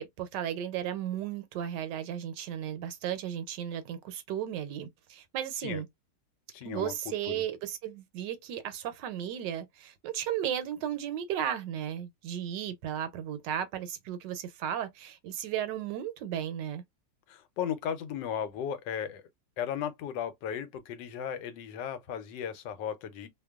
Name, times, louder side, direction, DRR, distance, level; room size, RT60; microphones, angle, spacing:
voice 1, 0.0-5.9 6.6-16.8, right 10 dB, 80° right, 1.2 m, -35 dB
voice 2, 6.5-6.9 7.3-7.4 17.3-19.2 19.6-23.3, left 8 dB, 90° left, 1.3 m, -35 dB
2.9 x 2.2 x 2.3 m
omnidirectional pair, 1.9 m